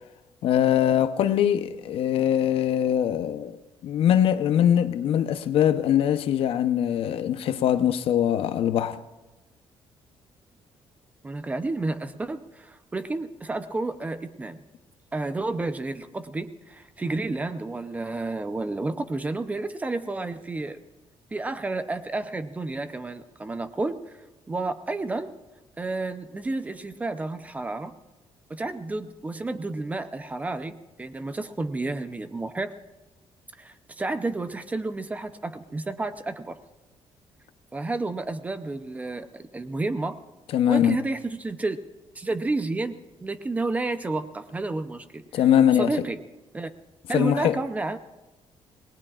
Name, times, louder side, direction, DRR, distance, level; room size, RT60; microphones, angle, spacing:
voice 1, 0.4-3.6 3.8-9.0 40.5-41.0 45.3-45.9 47.1-47.6, left 10 dB, 70° left, 0.8 m, -22 dB
voice 2, 11.2-14.6 15.1-20.8 21.3-24.2 24.5-25.3 25.8-27.9 28.5-32.7 33.6-36.6 37.7-40.2 40.7-41.8 42.2-45.2 45.8-46.2 46.5-46.7 47.1-48.0, right 2 dB, 15° right, 0.6 m, -31 dB
26.5 x 19.5 x 2.4 m
cardioid pair, 170°, 10 cm